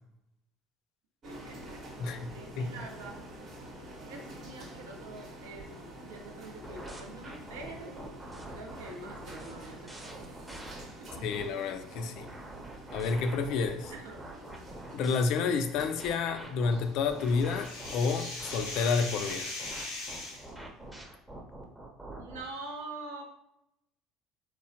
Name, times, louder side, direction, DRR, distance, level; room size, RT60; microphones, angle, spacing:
sound 1, 1.2-20.9, right 1 dB, 50° right, 0.8 m, -49 dB
voice 1, 1.2-3.2 4.1-10.5 11.0-11.4 13.9-14.3 22.2-23.2, right 2 dB, 85° right, 2 dB, 0.5 m, -46 dB
voice 2, 2.0-2.3 2.6-2.7 11.2-12.3 12.9-13.9 14.9-19.5, left 5 dB, 65° left, 8 dB, 0.3 m, -30 dB
sound 2, 6.6-11.4 11.9-15.2 15.8-22.5, right 1 dB, 10° right, 0.6 m, -45 dB
sound 3, 16.7-20.5, left 2 dB, 90° left, 0.7 m, -39 dB
2.9 x 2.0 x 2.7 m, 0.80 s
hypercardioid pair, 70°, 0 cm